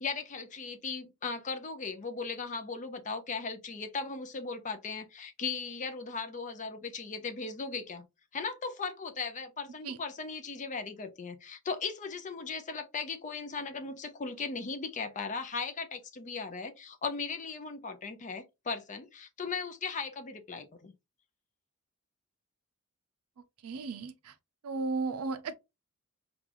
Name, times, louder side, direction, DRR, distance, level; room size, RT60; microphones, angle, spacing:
voice 1, 0.0-8.0 8.3-20.9, left 4 dB, 35° left, 0.5 m, -37 dB
voice 2, 23.6-24.3 24.6-25.6, right 3 dB, 75° right, 0.4 m, -34 dB
3.8 x 2.4 x 2.9 m
head